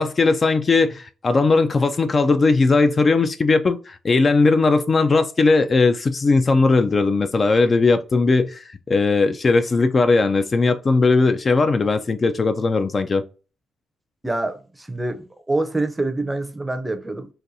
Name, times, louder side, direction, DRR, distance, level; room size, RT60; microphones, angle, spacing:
voice 1, 0.0-13.2, left 3 dB, 35° left, 0.3 m, -18 dB
voice 2, 14.2-17.3, right 2 dB, 10° right, 0.5 m, -26 dB
4.0 x 2.3 x 2.6 m
cardioid pair, 90°, 0 cm